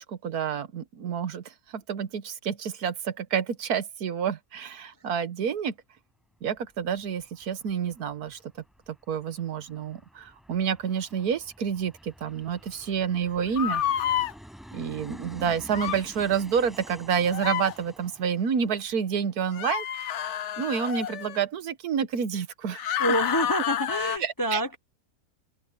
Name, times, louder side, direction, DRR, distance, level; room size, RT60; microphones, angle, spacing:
voice 1, 0.0-5.7 6.4-8.4 9.1-14.1 14.7-20.1 20.6-23.0 24.2-24.6, right 7 dB, 85° right, 1.6 m, -29 dB
Aircraft, 6.4-19.6, equal, ahead, 5.9 m, -50 dB
sound 1, 13.6-14.3 15.7-16.0 17.3-17.7 19.5-21.4 22.7-24.2, left 10 dB, 60° left, 0.9 m, -29 dB
voice 2, 23.0-24.8, equal, 25° left, 0.5 m, -27 dB
open air
omnidirectional pair, 1.6 m